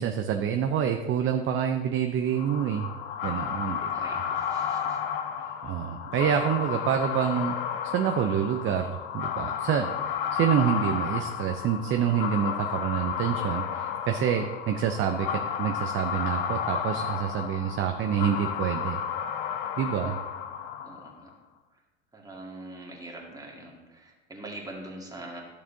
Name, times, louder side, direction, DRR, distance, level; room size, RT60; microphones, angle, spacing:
voice 1, 0.0-3.0 3.2-4.1 5.6-7.6 7.8-19.0 19.8-20.2, right 8 dB, 35° right, 5 dB, 0.6 m, -27 dB
sound 1, 2.3-21.2, left 8 dB, 60° left, 0.8 m, -32 dB
voice 2, 3.9-5.0 5.3-5.6 20.8-21.3 21.7-21.8 22.1-25.4, right 1 dB, 10° right, -1 dB, 1.9 m, -43 dB
11.0 x 6.7 x 2.7 m, 1.2 s
hypercardioid pair, 80°, 34 cm